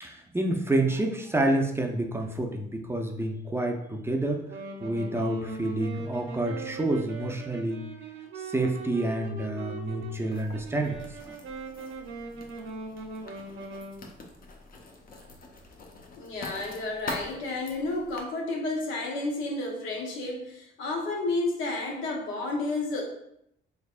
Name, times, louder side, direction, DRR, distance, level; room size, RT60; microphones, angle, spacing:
voice 1, 0.0-4.5 4.8-7.8 8.4-11.0 11.2-11.3, right 1 dB, 10° right, 2 dB, 0.4 m, -28 dB
Wind instrument woodwind instrument, 4.5-14.0, right 3 dB, 70° right, 0.7 m, -40 dB
Writing, 10.3-18.2, left 2 dB, 45° left, 0.7 m, -44 dB
voice 2, 16.2-23.0, left 2 dB, 90° left, 0 dB, 0.8 m, -31 dB
3.5 x 3.3 x 2.4 m, 0.77 s
cardioid pair, 90°, 20 cm